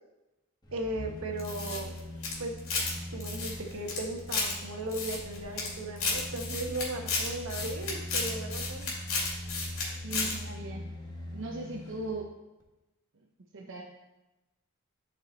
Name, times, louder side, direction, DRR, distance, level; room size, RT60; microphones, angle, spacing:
sound 1, 0.6-12.2 12.6-12.7, left 1 dB, 20° left, 1.1 m, -42 dB
voice 1, 0.7-1.9 2.4-2.5 3.1-8.9, right 2 dB, 80° right, 2 dB, 1.1 m, -37 dB
sound 2, 1.4-2.9 3.2-4.5 4.9-5.7 6.0-9.8 10.1-10.3, left 4 dB, 70° left, 2.3 m, -33 dB
voice 2, 10.0-10.9 11.3-12.3 13.1-13.3 13.5-13.8, right 2 dB, 60° right, -1 dB, 0.7 m, -38 dB
9.4 x 4.9 x 3.9 m, 1.0 s
head